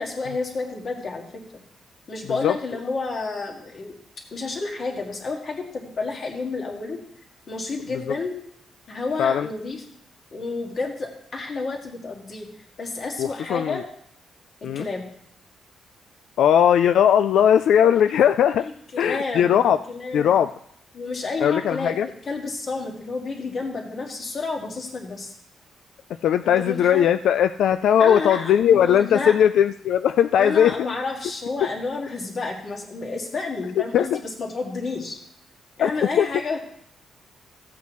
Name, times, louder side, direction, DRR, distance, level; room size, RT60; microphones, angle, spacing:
voice 1, 0.0-1.4 2.1-7.0 7.5-8.3 8.9-9.8 10.3-12.5 12.8-13.8 14.6-15.1 18.6-20.3 20.9-25.3 26.4-27.1 28.0-29.4 30.4-35.2 35.8-36.6, left 3 dB, 35° left, 1 dB, 1.9 m, -30 dB
voice 2, 13.2-13.8 14.6-14.9 16.4-18.7 19.0-19.8 20.1-20.5 21.4-22.1 26.2-30.7 33.9-34.2 35.8-35.9 36.2-36.3, left 9 dB, 75° left, 10 dB, 0.3 m, -19 dB
15.5 x 8.3 x 3.1 m, 0.71 s
wide cardioid pair, 175°, 0 cm